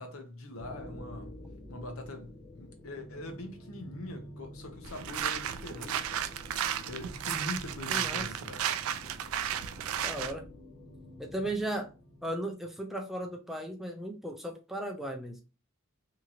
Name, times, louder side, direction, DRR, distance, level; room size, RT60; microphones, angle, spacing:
voice 1, 0.0-1.3 1.7-6.3 6.9-8.6, left 1 dB, 85° left, 0.8 m, -43 dB
sound 1, 0.6-12.5, left 1 dB, 35° left, 0.6 m, -48 dB
sound 2, 4.8-10.3, right 9 dB, 75° right, 0.3 m, -34 dB
voice 2, 7.9-8.2 10.0-10.5 11.2-11.9 12.2-15.4, right 1 dB, ahead, 0.4 m, -36 dB
2.8 x 2.8 x 2.4 m
head